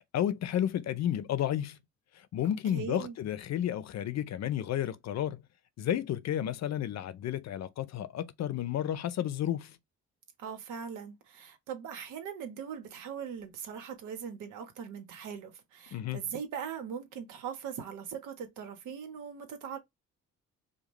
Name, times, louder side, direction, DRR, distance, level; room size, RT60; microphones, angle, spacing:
voice 1, 0.1-1.8 2.1-5.4 5.8-9.8 15.9-16.2, left 11 dB, 60° left, 0.7 m, -32 dB
voice 2, 2.7-3.2 10.4-19.8, right 7 dB, 85° right, 1.3 m, -40 dB
5.1 x 2.3 x 3.2 m
cardioid pair, 90°, 30 cm